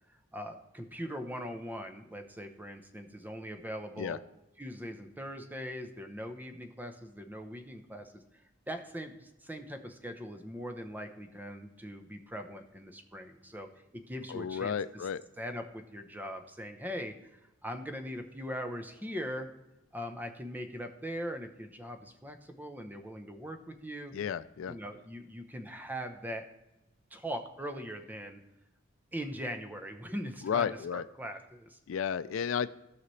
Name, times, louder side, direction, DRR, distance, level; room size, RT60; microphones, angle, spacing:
voice 1, 0.1-4.2 4.6-8.2 8.7-15.0 15.4-19.5 19.9-24.1 24.7-26.4 27.1-28.4 29.1-31.8, equal, 10° right, 6 dB, 0.8 m, -41 dB
voice 2, 14.3-15.2 24.1-24.8 30.4-31.1 31.9-32.7, left 7 dB, 80° left, 15 dB, 0.4 m, -32 dB
16.0 x 5.8 x 3.2 m, 0.94 s
head